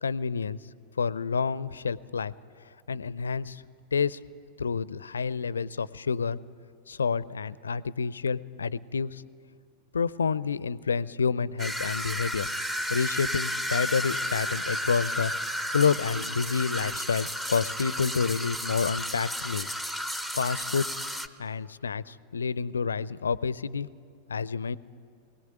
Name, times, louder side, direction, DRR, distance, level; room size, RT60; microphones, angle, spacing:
voice 1, 0.0-0.6 1.0-2.3 2.9-3.6 3.9-4.2 4.6-6.4 6.9-9.2 9.9-12.5 12.9-15.3 15.7-19.7 20.3-20.9 21.4-23.9 24.3-24.8, left 5 dB, 70° left, 20 dB, 0.5 m, -28 dB
sound 1, 11.6-21.3, equal, 10° right, 0.9 m, -32 dB
22.0 x 17.5 x 9.0 m, 2.3 s
figure-of-eight pair, 90°, 0 cm